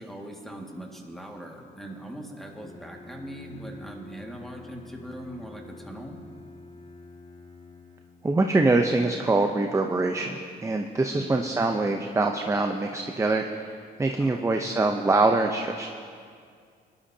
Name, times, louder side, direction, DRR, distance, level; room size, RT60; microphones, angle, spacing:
voice 1, 0.0-6.2 11.1-11.5 14.2-14.4, right 1 dB, ahead, 0 dB, 1.9 m, -41 dB
Bowed string instrument, 2.5-8.4, left 2 dB, 35° left, 2.1 m, -47 dB
voice 2, 8.2-15.9, right 2 dB, 15° right, 4 dB, 0.7 m, -24 dB
22.0 x 12.0 x 2.8 m, 2.2 s
cardioid pair, 90°, 20 cm